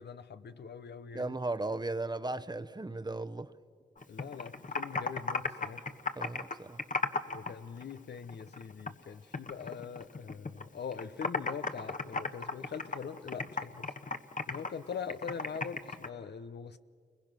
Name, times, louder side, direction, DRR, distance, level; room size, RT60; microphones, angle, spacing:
voice 1, 0.0-1.3 4.1-5.9 7.3-13.9 14.5-16.8, left 6 dB, 75° left, 0.8 m, -42 dB
voice 2, 1.1-3.5 6.2-6.8, right 2 dB, 25° right, 0.9 m, -36 dB
Computer keyboard, 4.0-7.5 7.8-9.0 9.3-10.6 10.9-16.1, left 3 dB, 45° left, 1.3 m, -35 dB
29.5 x 21.5 x 6.1 m
cardioid pair, 50°, 18 cm